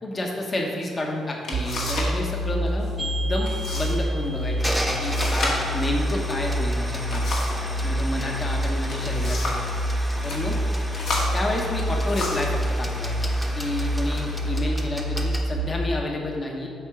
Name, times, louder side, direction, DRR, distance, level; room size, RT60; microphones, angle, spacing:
voice 1, 0.0-7.2 7.8-9.6 10.2-10.5 11.3-16.7, left 1 dB, 30° left, 0 dB, 1.0 m, -30 dB
sound 1, 0.9-1.0 1.4-2.2 2.5-2.9 3.4-4.0 4.3-4.4 5.0-7.7 8.7-9.7 10.1-10.4 10.9-12.6 13.3-13.5 14.1-14.6, left 2 dB, 65° left, 1.6 m, -31 dB
sound 2, 1.5-15.6, equal, 70° right, 0.6 m, -27 dB
sound 3, 3.0-15.4, equal, ahead, 0.9 m, -34 dB
7.9 x 3.6 x 5.8 m, 2.4 s
cardioid pair, 90°, 0 cm